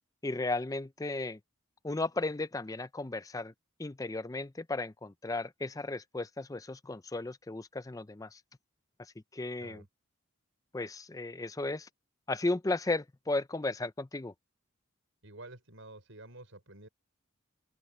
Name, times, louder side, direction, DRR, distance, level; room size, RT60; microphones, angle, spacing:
voice 1, 0.2-1.4 1.8-3.5 3.8-8.4 9.0-9.8 10.7-11.9 12.3-14.3, left 2 dB, 15° left, 0.4 m, -35 dB
voice 2, 15.2-16.9, right 2 dB, 70° right, 5.2 m, -50 dB
open air
head